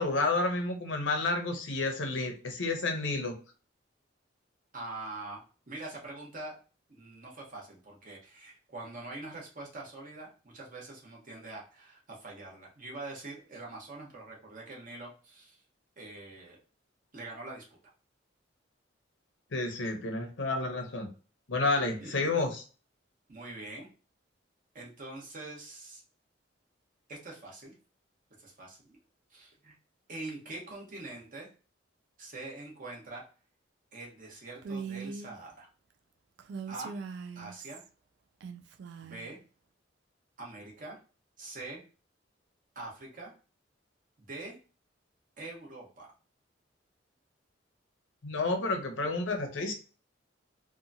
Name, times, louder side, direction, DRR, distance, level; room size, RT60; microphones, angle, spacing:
voice 1, 0.0-3.3 19.5-21.1 21.5-22.6 48.2-49.7, left 3 dB, 85° left, 4 dB, 0.7 m, -30 dB
voice 2, 4.7-6.5 6.9-15.6 16.0-16.6 17.1-17.6 22.0-22.3 23.3-23.9 24.7-26.0 27.1-27.7 28.4-29.0 29.3-29.7 30.1-31.5 32.2-33.2 33.9-35.7 36.7-37.0 37.3-37.8 39.0-39.4 40.4-41.0 41.4-41.8 42.7-43.3 44.2-44.5 45.4-46.1, right 2 dB, 45° right, -2 dB, 1.0 m, -44 dB
Female speech woman speaking, 34.6-35.3 36.4-37.9 38.4-39.3, right 5 dB, 65° right, 0.3 m, -41 dB
2.9 x 2.3 x 2.5 m, 0.36 s
head